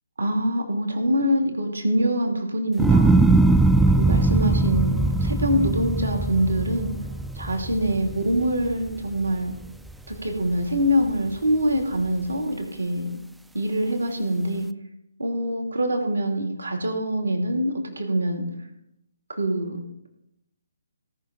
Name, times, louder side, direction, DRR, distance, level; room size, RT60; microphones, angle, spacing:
voice 1, 0.2-3.3 3.9-6.9 7.3-9.6 10.1-13.2 13.5-14.7 15.2-18.4 19.3-19.8, equal, 75° right, 3 dB, 2.8 m, -24 dB
sound 1, 2.8-9.1 9.5-10.1, right 2 dB, 5° right, 0.4 m, -21 dB
17.5 x 6.2 x 5.3 m, 0.81 s
figure-of-eight pair, 140°, 0 cm